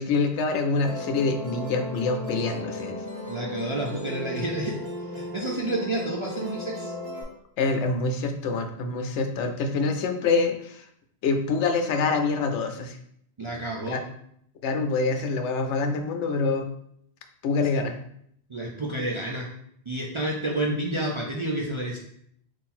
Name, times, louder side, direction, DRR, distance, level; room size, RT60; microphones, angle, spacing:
voice 1, 0.0-3.0 7.6-10.8 11.2-13.0 13.9-14.0 14.6-16.7 17.4-17.9, left 4 dB, 80° left, 5 dB, 0.9 m, -26 dB
Musical instrument, 0.8-7.2, left 2 dB, 15° right, 1.3 m, -35 dB
voice 2, 3.3-4.7 5.1-6.9 13.4-14.0 18.5-19.5 19.9-22.0, right 1 dB, 50° right, -2 dB, 0.3 m, -29 dB
3.7 x 2.6 x 4.2 m, 0.69 s
omnidirectional pair, 1.2 m